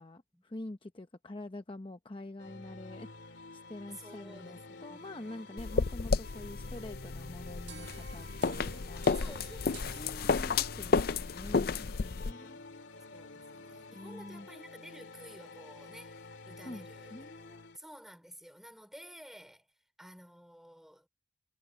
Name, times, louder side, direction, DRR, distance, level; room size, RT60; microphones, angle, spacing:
voice 1, 0.0-9.4 9.9-12.6 13.9-14.5 16.6-17.7, left 1 dB, 30° left, 0.8 m, -46 dB
sound 1, 2.4-17.8, left 2 dB, 80° left, 2.4 m, -49 dB
voice 2, 3.9-5.7 6.6-7.4 9.1-10.3 11.9-12.1 12.6-17.3 17.7-19.7 20.0-21.1, equal, ahead, 3.6 m, -53 dB
sound 2, 5.6-12.3, left 4 dB, 55° left, 0.5 m, -32 dB
sound 3, 7.7-11.0, right 6 dB, 85° right, 1.5 m, -52 dB
head